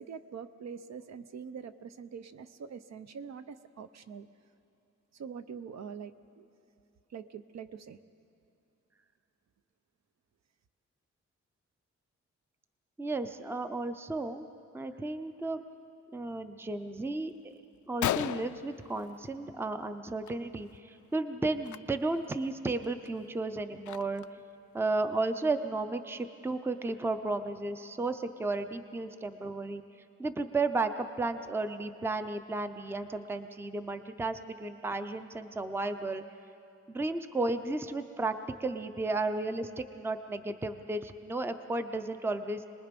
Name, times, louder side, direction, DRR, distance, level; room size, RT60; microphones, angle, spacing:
voice 1, 0.0-4.3 5.1-6.4 7.1-8.0, right 6 dB, 65° right, 11 dB, 0.7 m, -44 dB
voice 2, 13.0-14.5 14.7-15.6 16.1-17.5 17.9-24.2 24.7-29.8 30.2-36.2 36.9-42.6, right 2 dB, 10° right, 9 dB, 0.5 m, -33 dB
Gunshot gunfire, 17.3-17.4 17.7-17.8 18.0-19.6 19.9-20.3 20.6-20.8 21.6-21.8 22.3-22.4 22.8-24.4, left 12 dB, 85° left, 0.5 m, -36 dB
26.5 x 20.0 x 5.2 m, 2.7 s
wide cardioid pair, 175°, 29 cm